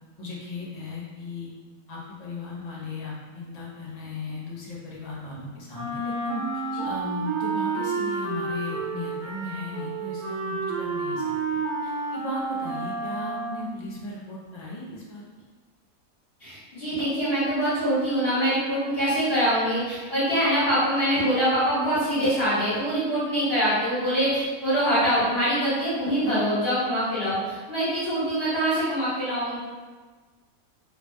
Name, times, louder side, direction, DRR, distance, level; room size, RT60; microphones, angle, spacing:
voice 1, 0.2-1.5 1.9-6.4 6.8-15.2, left 2 dB, 60° left, -6 dB, 0.4 m, -37 dB
Wind instrument woodwind instrument, 5.7-13.8, right 4 dB, 85° right, 1.1 m, -30 dB
voice 2, 16.4-29.6, equal, 40° left, -12 dB, 1.6 m, -24 dB
3.0 x 2.6 x 2.2 m, 1.4 s
omnidirectional pair, 1.6 m